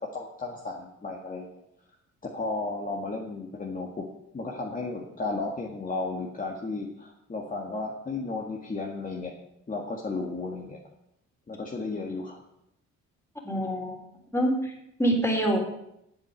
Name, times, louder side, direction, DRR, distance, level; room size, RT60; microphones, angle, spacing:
voice 1, 0.1-1.6 2.2-4.1 4.3-9.3 9.7-10.8 11.5-12.4, left 3 dB, 25° left, -1 dB, 1.9 m, -34 dB
voice 2, 13.4-13.9 14.3-14.7 15.0-15.6, right 1 dB, 10° left, 1 dB, 3.5 m, -25 dB
9.6 x 7.6 x 7.7 m, 0.79 s
cardioid pair, 90°, 30 cm